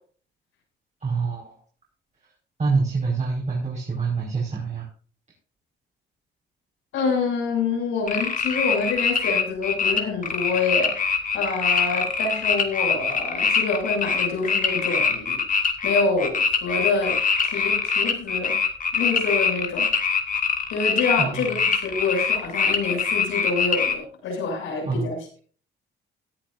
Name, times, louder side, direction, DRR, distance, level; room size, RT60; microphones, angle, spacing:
voice 1, 1.0-1.6 2.6-4.9 21.2-21.5 24.9-25.1, right 4 dB, 35° right, -3 dB, 5.2 m, -26 dB
voice 2, 6.9-15.4 15.8-18.6 18.9-19.9 20.7-25.4, left 4 dB, 90° left, 1 dB, 7.2 m, -27 dB
sound 1, 8.1-23.9, left 5 dB, 40° left, 2.2 m, -23 dB
18.0 x 11.0 x 2.7 m, 0.42 s
cardioid pair, 90°, 20 cm